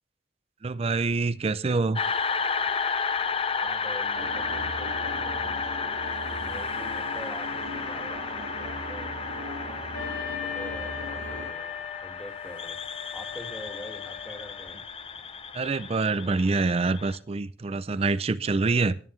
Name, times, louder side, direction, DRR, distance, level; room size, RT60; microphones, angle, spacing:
voice 1, 0.6-2.0 15.5-19.0, right 3 dB, 35° right, 0.4 m, -26 dB
sound 1, 2.0-17.2, left 5 dB, 30° left, 0.7 m, -32 dB
voice 2, 3.6-5.7 6.3-12.8 13.1-14.8, equal, 5° left, 1.9 m, -45 dB
sound 2, 4.1-11.5, right 1 dB, 85° right, 1.1 m, -39 dB
Wind instrument woodwind instrument, 9.9-14.8, left 9 dB, 65° left, 5.9 m, -39 dB
19.5 x 9.3 x 3.2 m
head